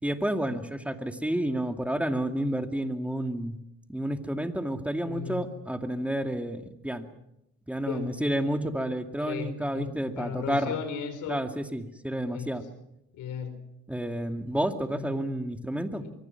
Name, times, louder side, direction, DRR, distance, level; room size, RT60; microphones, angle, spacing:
voice 1, 0.0-3.6 3.9-7.1 7.7-10.8 11.3-12.6 13.9-16.0, right 1 dB, 5° right, 6 dB, 2.4 m, -30 dB
voice 2, 5.0-5.4 7.8-8.1 8.5-8.7 9.3-11.4 12.3-12.5 13.1-13.5 14.9-15.2 16.0-16.1, left 7 dB, 85° left, 10 dB, 4.2 m, -36 dB
24.5 x 24.0 x 5.9 m, 0.82 s
cardioid pair, 90°, 30 cm